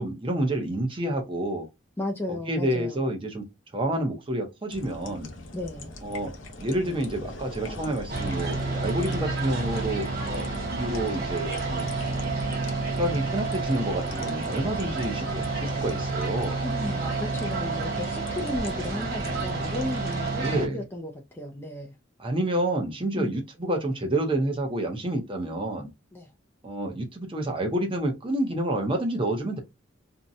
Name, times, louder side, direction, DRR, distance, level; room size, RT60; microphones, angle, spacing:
voice 1, 0.0-1.7 2.3-3.4 3.7-5.3 6.0-6.3 6.6-11.9 12.9-16.6 20.4-20.8 22.2-25.9 26.6-29.6, right 1 dB, 25° right, 0.6 m, -29 dB
voice 2, 2.0-3.0 5.5-5.9 16.6-21.9 23.2-23.3 26.1-26.3, left 1 dB, 10° left, 0.3 m, -34 dB
sound 1, 4.7-20.3, left 1 dB, 70° left, 0.6 m, -41 dB
sound 2, 8.1-20.7, right 3 dB, 50° right, 1.0 m, -30 dB
2.6 x 2.1 x 2.6 m
head